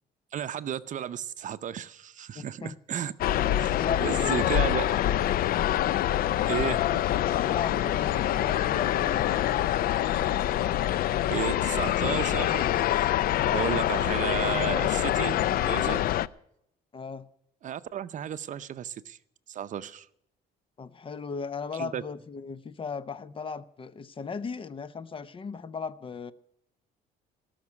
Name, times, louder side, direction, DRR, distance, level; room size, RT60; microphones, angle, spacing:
voice 1, 0.3-3.1 3.5-4.9 6.5-7.0 11.3-13.1 13.5-16.1 17.6-19.2 19.5-20.1 21.8-22.0, right 10 dB, 50° right, 0.7 m, -33 dB
voice 2, 2.3-2.7 3.7-4.7 7.3-9.3 16.9-17.3 20.8-26.3, left 5 dB, 30° left, 0.8 m, -36 dB
sound 1, 3.2-16.3, left 12 dB, 60° left, 0.5 m, -25 dB
18.0 x 6.0 x 9.7 m
cardioid pair, 110°, 17 cm